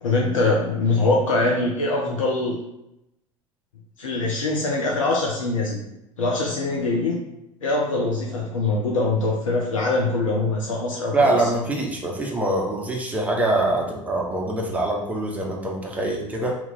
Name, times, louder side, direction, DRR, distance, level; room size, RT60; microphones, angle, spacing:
voice 1, 0.0-2.6 4.0-5.8 6.2-7.2 7.6-11.3, left 2 dB, 75° left, -1 dB, 0.5 m, -23 dB
voice 2, 11.1-16.6, right 2 dB, 10° right, -1 dB, 0.7 m, -24 dB
2.9 x 2.3 x 3.7 m, 0.85 s
figure-of-eight pair, 70°, 17 cm